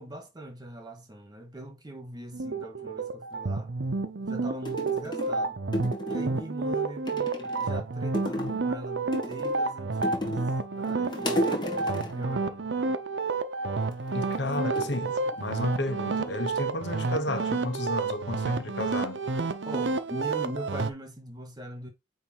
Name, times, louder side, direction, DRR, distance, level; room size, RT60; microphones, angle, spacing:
voice 1, 0.0-3.7 4.2-5.6 6.1-10.4 10.8-12.7 19.7-21.9, right 1 dB, 25° right, 2.1 m, -41 dB
sound 1, 2.3-20.9, right 3 dB, 90° right, 0.7 m, -30 dB
sound 2, 4.2-4.3 4.7-5.4 5.7-6.5 7.1-7.8 8.1-8.7 9.1-10.5 10.8-12.2 13.8-14.3 14.8-15.8 16.1-16.6, left 1 dB, 25° left, 1.9 m, -34 dB
voice 2, 14.1-19.2, left 1 dB, 75° left, 1.4 m, -32 dB
9.0 x 3.4 x 4.6 m
head